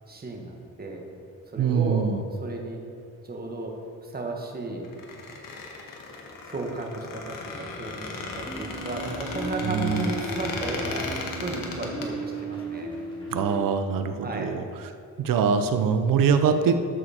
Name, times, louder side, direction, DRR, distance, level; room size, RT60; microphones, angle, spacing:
voice 1, 0.1-1.1 1.5-2.1 2.4-2.8 3.2-3.8 4.0-4.9 6.4-13.3 14.2-14.5, right 2 dB, 30° right, 1 dB, 1.7 m, -34 dB
voice 2, 1.6-2.2 9.6-10.1 13.3-14.7 15.2-16.8, right 6 dB, 90° right, 8 dB, 0.8 m, -23 dB
Squeak, 4.8-12.1, left 3 dB, 85° left, 1.6 m, -36 dB
sound 1, 8.5-13.6, right 2 dB, 15° left, 2.5 m, -36 dB
13.5 x 6.5 x 4.4 m, 2.6 s
cardioid pair, 110°, 32 cm